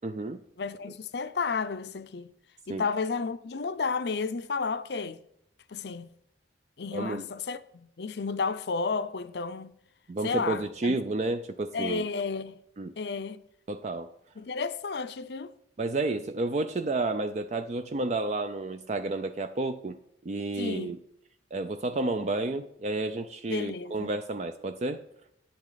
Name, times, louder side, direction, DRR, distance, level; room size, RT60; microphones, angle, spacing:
voice 1, 0.0-0.4 2.7-2.8 6.9-7.2 10.1-12.0 12.8-12.9 13.7-14.1 15.8-19.9 20.3-21.0 21.5-25.0, right 2 dB, 40° right, 0.4 m, -31 dB
voice 2, 0.6-2.3 2.7-5.2 5.7-6.1 6.8-9.8 10.2-11.0 11.7-12.6 13.0-13.4 14.4-15.5 20.5-21.0 23.5-24.1, left 4 dB, 60° left, 0.5 m, -32 dB
10.5 x 8.9 x 4.0 m
head